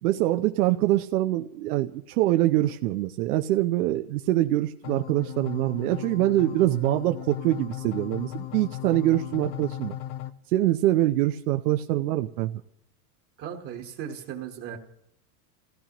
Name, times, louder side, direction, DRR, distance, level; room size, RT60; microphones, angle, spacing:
voice 1, 0.0-10.0 10.5-12.6, right 15 dB, 80° right, 6 dB, 0.8 m, -24 dB
sound 1, 4.8-10.3, left 14 dB, 80° left, 0.9 m, -37 dB
voice 2, 13.4-14.8, right 9 dB, 30° right, 2 dB, 1.3 m, -37 dB
28.5 x 16.0 x 3.0 m, 0.71 s
supercardioid pair, 155°, 44 cm